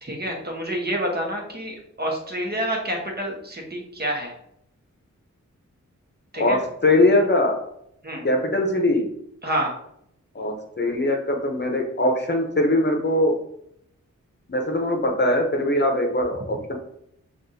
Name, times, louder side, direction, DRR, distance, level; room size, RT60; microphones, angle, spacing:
voice 1, 0.0-4.3 6.3-6.6 8.0-8.3 9.4-9.8, right 1 dB, 30° right, -1 dB, 1.2 m, -28 dB
voice 2, 6.3-7.6 8.2-9.1 10.3-13.3 14.5-16.7, left 1 dB, 35° left, 2 dB, 0.9 m, -21 dB
5.8 x 2.5 x 2.7 m, 0.73 s
wide cardioid pair, 70°, 30 cm